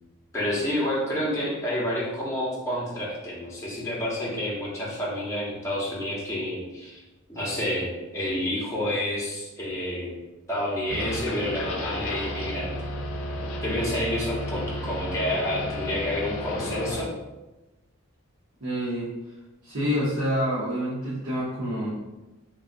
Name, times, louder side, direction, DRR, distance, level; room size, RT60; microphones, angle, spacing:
voice 1, 0.3-7.0 7.3-10.2 10.5-12.8 13.6-17.1, left 1 dB, 15° left, -6 dB, 0.9 m, -29 dB
sound 1, 10.9-17.0, left 1 dB, 70° left, 0.4 m, -32 dB
voice 2, 18.6-19.1 19.6-21.9, equal, 85° right, -9 dB, 1.0 m, -27 dB
3.2 x 2.6 x 2.5 m, 1.1 s
head